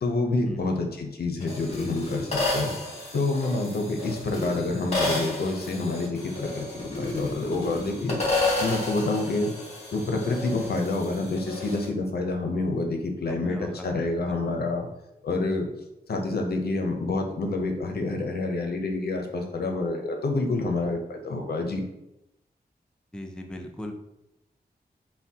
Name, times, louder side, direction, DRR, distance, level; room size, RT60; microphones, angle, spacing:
voice 1, 0.0-2.7 3.1-8.2 8.6-9.5 9.9-14.9 15.2-15.7 16.1-21.8, left 2 dB, 75° left, 3 dB, 0.6 m, -28 dB
sound 1, 1.4-11.9, left 2 dB, 40° left, 1.3 m, -31 dB
voice 2, 13.3-14.5 23.1-23.9, left 1 dB, 5° left, 3 dB, 0.4 m, -39 dB
5.6 x 2.2 x 2.8 m, 0.89 s
wide cardioid pair, 95°, 16 cm